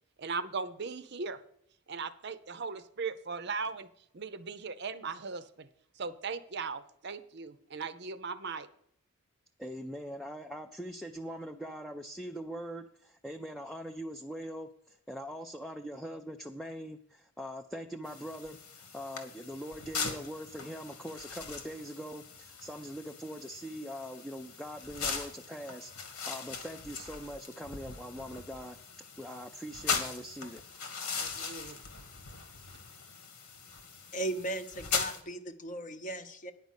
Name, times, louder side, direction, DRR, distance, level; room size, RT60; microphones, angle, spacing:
voice 1, 0.2-1.4 1.9-3.9 4.1-5.7 6.0-8.7 31.2-31.8, right 4 dB, 50° right, 12 dB, 0.6 m, -38 dB
voice 2, 9.6-30.6, equal, ahead, 3 dB, 0.4 m, -42 dB
sound 1, 18.0-35.2, left 5 dB, 90° left, 1.7 m, -40 dB
voice 3, 34.1-36.5, right 1 dB, 35° left, 9 dB, 0.8 m, -37 dB
10.5 x 5.2 x 8.1 m, 0.71 s
head